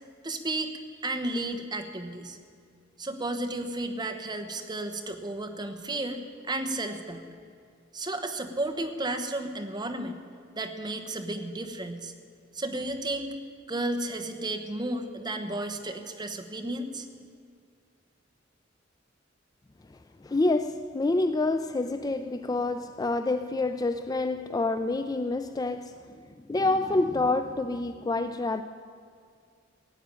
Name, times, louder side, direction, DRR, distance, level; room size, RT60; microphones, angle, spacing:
voice 1, 0.2-0.7 1.0-2.4 3.0-6.2 6.5-7.2 7.9-10.2 10.5-12.1 12.5-13.3 13.7-17.1, right 2 dB, 20° right, 1.1 m, -33 dB
voice 2, 19.9-25.9 26.4-28.6, left 2 dB, 20° left, 0.4 m, -27 dB
16.5 x 8.8 x 8.9 m
head